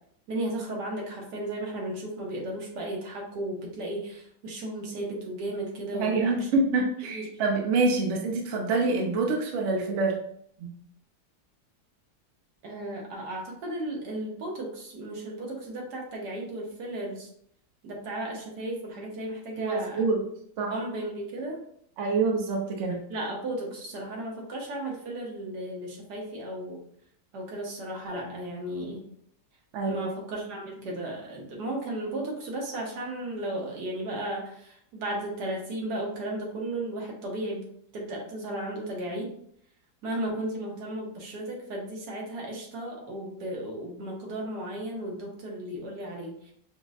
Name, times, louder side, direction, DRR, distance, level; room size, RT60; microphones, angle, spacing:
voice 1, 0.3-6.5 7.1-7.3 12.6-17.3 17.8-20.0 20.7-21.6 23.1-26.8 27.3-29.1 29.8-37.7 37.9-39.3 40.0-46.5, right 1 dB, 80° right, -1 dB, 1.4 m, -35 dB
voice 2, 5.9-10.2 10.6-10.7 19.6-20.3 20.6-20.7 22.0-23.0 29.7-30.1, right 3 dB, 65° right, 2 dB, 0.8 m, -26 dB
5.1 x 2.1 x 2.4 m, 0.67 s
omnidirectional pair, 1.7 m